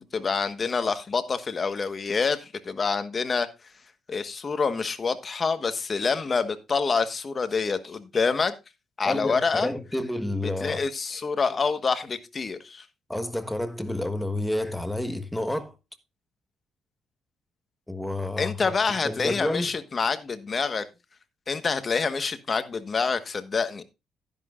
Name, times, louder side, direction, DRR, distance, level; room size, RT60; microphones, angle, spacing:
voice 1, 0.1-3.5 4.1-8.5 9.0-9.7 10.4-12.8 18.4-20.9 21.5-23.8, left 5 dB, 40° left, 1.4 m, -27 dB
voice 2, 9.0-10.8 13.1-15.7 17.9-18.5 19.0-19.7, left 1 dB, 5° left, 1.4 m, -29 dB
12.0 x 11.0 x 2.5 m
cardioid pair, 90°, 0 cm